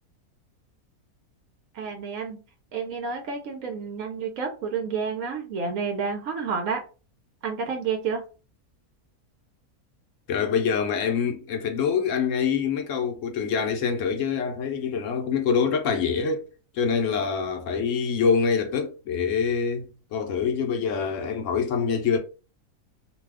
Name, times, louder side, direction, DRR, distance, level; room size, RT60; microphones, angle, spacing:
voice 1, 1.7-2.4 2.7-6.8 7.4-8.2, right 5 dB, 65° right, 0.9 m, -30 dB
voice 2, 10.3-16.5 16.7-22.2, left 6 dB, 65° left, 0.8 m, -25 dB
2.6 x 2.2 x 3.4 m
omnidirectional pair, 1.6 m